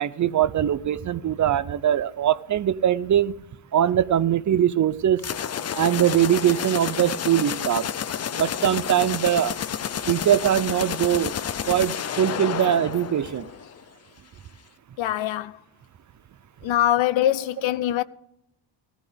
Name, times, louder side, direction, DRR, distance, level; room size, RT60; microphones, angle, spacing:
voice 1, 0.0-3.3 3.7-5.2 5.7-7.9 8.4-9.6 10.1-11.4 11.7-13.5, right 10 dB, 40° right, 0.5 m, -22 dB
sound 1, 5.2-13.8, left 8 dB, 35° left, 0.5 m, -30 dB
voice 2, 15.0-15.5 16.6-18.0, left 12 dB, 70° left, 0.7 m, -23 dB
16.5 x 14.5 x 3.5 m
wide cardioid pair, 170°, 49 cm